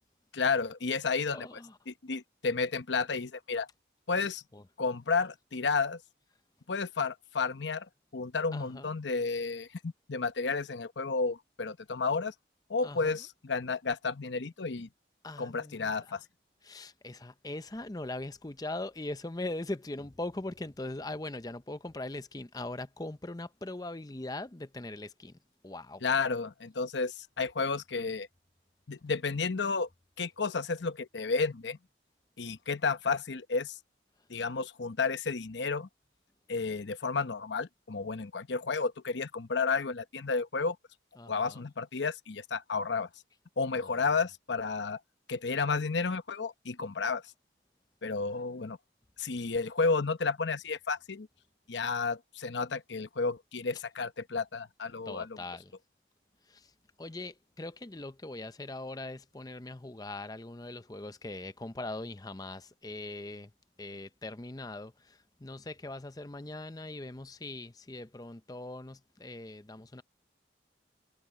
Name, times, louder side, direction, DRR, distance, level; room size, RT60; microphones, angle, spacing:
voice 1, 0.3-1.5 1.9-3.7 4.1-4.4 4.8-6.0 6.7-7.9 8.1-12.3 12.7-14.9 15.4-16.2 26.0-28.3 28.9-29.9 30.2-31.8 32.4-33.8 34.3-35.9 36.5-40.8 41.3-43.1 43.6-45.0 45.3-47.2 48.0-48.8 49.2-51.3 51.7-55.3, left 4 dB, 75° left, 0.9 m, -32 dB
voice 2, 1.3-1.8 4.5-4.6 8.5-8.9 12.8-13.1 15.2-16.2 16.6-25.4 25.6-26.0 41.2-41.7 43.7-43.9 48.3-48.4 55.1-55.7 56.5-56.7 57.0-63.5 63.8-70.0, left 2 dB, 20° left, 0.6 m, -41 dB
head